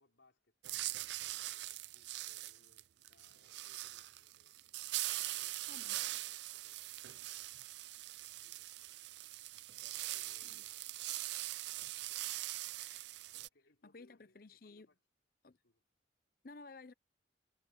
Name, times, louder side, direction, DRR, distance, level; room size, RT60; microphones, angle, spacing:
voice 1, 0.0-4.6 5.3-7.6 8.1-9.1 10.1-12.4 13.2-15.0 15.6-15.8, left 2 dB, 90° left, 5.7 m, -73 dB
sound 1, 0.6-13.5, right 17 dB, 70° right, 0.4 m, -42 dB
voice 2, 5.7-6.0 10.5-10.6 13.8-14.9 15.4-15.6 16.4-16.9, left 3 dB, 50° left, 0.7 m, -54 dB
head